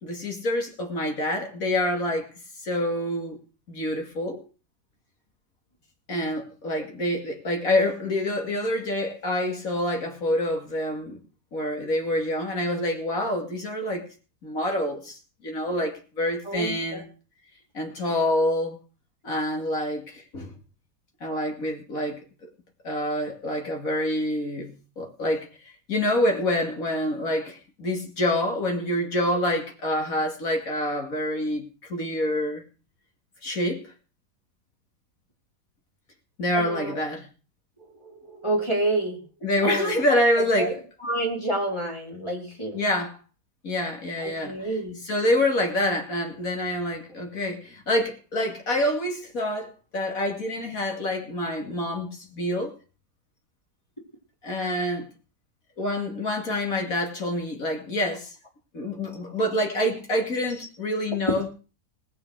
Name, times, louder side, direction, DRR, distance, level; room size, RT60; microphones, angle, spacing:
voice 1, 0.0-2.3 2.6-3.4 3.7-4.4 6.1-11.2 11.5-14.1 14.4-17.1 17.7-18.8 19.2-20.5 21.2-22.2 22.8-32.6 33.4-33.9 36.4-37.3 39.4-40.8 42.7-43.2 43.6-44.7 45.1-52.7 54.4-55.1 55.8-58.3 58.7-61.5, left 1 dB, 55° left, 2.9 m, -27 dB
voice 2, 16.4-17.0 36.5-37.1 38.0-39.2 39.6-40.7 41.0-42.8 44.2-45.0 59.1-59.2, right 1 dB, 15° left, 4.4 m, -29 dB
19.5 x 6.9 x 6.4 m
omnidirectional pair, 1.8 m